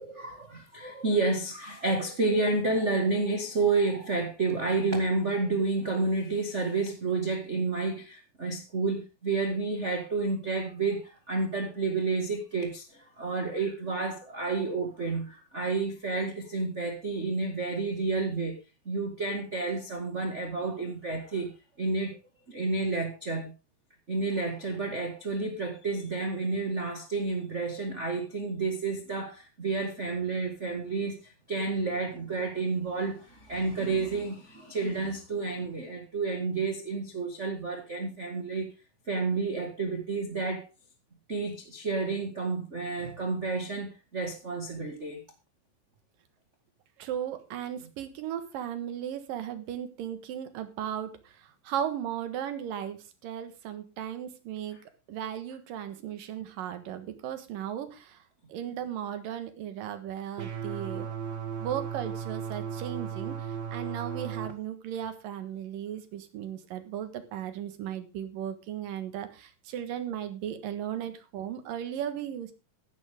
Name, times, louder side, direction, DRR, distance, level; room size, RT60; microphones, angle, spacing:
voice 1, 0.0-18.6 18.8-22.2 22.5-23.5 24.1-38.7 39.1-40.6 41.3-45.2, right 3 dB, 30° right, 1.3 m, -30 dB
voice 2, 47.0-51.1 51.4-54.8 55.1-58.2 58.5-61.1 61.6-63.4 63.7-72.5, right 10 dB, 70° right, 3.1 m, -36 dB
sound 1, 60.4-64.5, right 7 dB, 55° right, 1.2 m, -36 dB
15.0 x 11.5 x 3.7 m
omnidirectional pair, 4.2 m